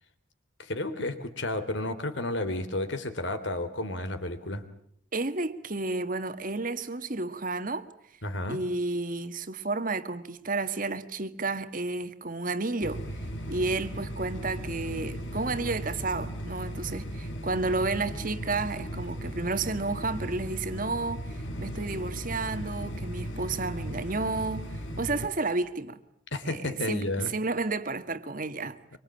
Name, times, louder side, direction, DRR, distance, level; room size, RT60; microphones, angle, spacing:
voice 1, 0.6-4.6 8.2-8.6 26.3-27.3, left 1 dB, 70° left, 3.2 m, -32 dB
voice 2, 5.1-7.8 8.5-13.0 13.5-26.0 26.5-26.6 26.9-29.0, right 3 dB, 45° right, 1.6 m, -31 dB
sound 1, 12.8-25.3, equal, 85° left, 4.5 m, -37 dB
25.0 x 25.0 x 8.9 m
head